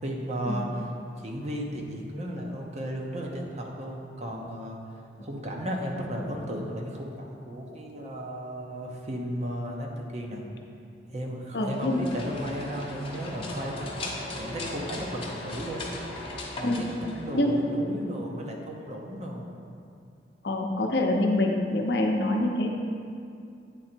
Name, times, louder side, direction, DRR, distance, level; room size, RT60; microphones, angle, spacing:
voice 1, 0.0-4.8 5.2-10.4 11.1-15.8 16.6-19.5, equal, 40° right, 0 dB, 0.7 m, -35 dB
voice 2, 11.5-12.0 16.6-16.9 17.3-17.5 20.4-22.7, left 1 dB, 60° left, 2 dB, 0.7 m, -25 dB
sound 1, 11.6-17.8, left 2 dB, 30° left, 0.9 m, -38 dB
8.9 x 3.9 x 4.4 m, 2.4 s
head